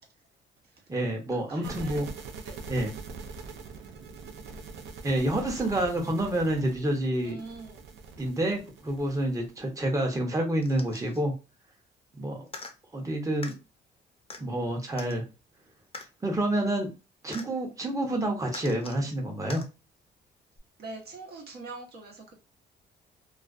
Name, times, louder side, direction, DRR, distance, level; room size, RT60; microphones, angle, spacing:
voice 1, 0.9-2.1 2.7-2.9 5.0-7.4 8.2-11.3 12.1-12.5 12.9-13.6 14.4-15.2 16.2-16.9 17.2-19.6, right 1 dB, 15° right, 0.8 m, -28 dB
voice 2, 1.5-2.0 2.4-2.7 7.2-7.8 20.8-22.3, right 3 dB, 55° right, 0.8 m, -43 dB
sound 1, 1.6-9.7, right 4 dB, 75° right, 0.5 m, -43 dB
sound 2, 10.6-11.2 12.5-12.7 13.4-13.6 14.3-14.4 15.0-15.2 15.9-16.1 17.3-17.5 18.5-19.0 19.5-19.7 20.6-20.7, left 3 dB, 30° left, 0.6 m, -42 dB
2.4 x 2.2 x 2.4 m
supercardioid pair, 65°, 20 cm